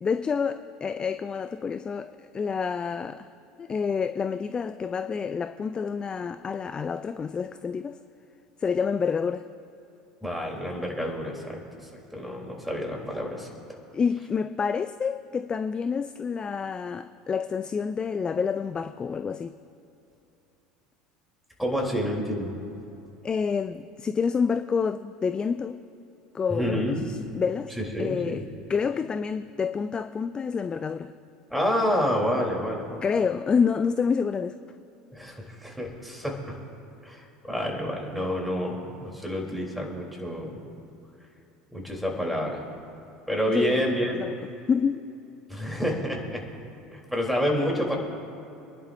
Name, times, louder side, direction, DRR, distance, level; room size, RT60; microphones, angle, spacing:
voice 1, 0.0-3.3 3.6-8.0 8.6-9.4 13.9-19.6 23.2-25.8 26.3-28.4 28.7-31.1 33.0-34.6 43.5-43.9 44.1-44.3 44.7-45.1, left 6 dB, 25° left, 11 dB, 0.4 m, -28 dB
voice 2, 10.2-13.5 21.6-22.6 26.5-27.0 27.8-28.4 31.5-33.0 35.1-36.4 37.0-40.6 41.7-42.6 43.3-44.1 45.5-46.4 46.9-48.0, equal, ahead, -1 dB, 3.6 m, -29 dB
28.0 x 11.0 x 2.7 m, 2.9 s
hypercardioid pair, 75°, 3 cm